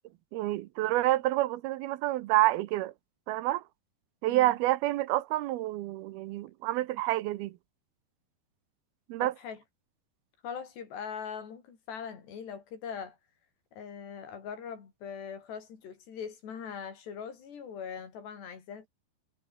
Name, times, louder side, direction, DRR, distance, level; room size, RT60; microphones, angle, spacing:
voice 1, 0.3-2.9 3.3-3.6 4.2-7.6 9.1-9.3, right 16 dB, 80° right, 2.6 m, -28 dB
voice 2, 9.2-9.6 10.4-13.2 13.7-18.9, left 7 dB, 90° left, 6.4 m, -41 dB
omnidirectional pair, 4.7 m